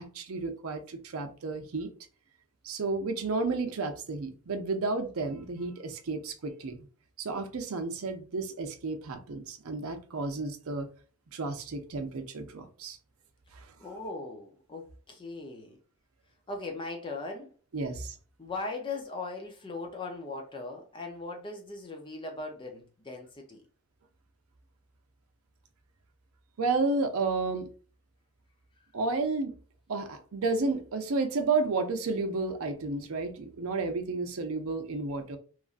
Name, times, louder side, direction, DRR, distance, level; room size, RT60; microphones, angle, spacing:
voice 1, 0.0-1.9 2.6-6.8 7.2-10.9 11.3-13.0 13.5-13.7 17.7-18.2 26.6-27.7 28.9-29.6 29.9-35.4, right 3 dB, 65° right, 0.5 m, -32 dB
voice 2, 13.8-15.8 16.5-17.5 18.4-23.6 28.8-28.9, left 3 dB, 20° left, 0.5 m, -39 dB
3.0 x 2.5 x 2.4 m
head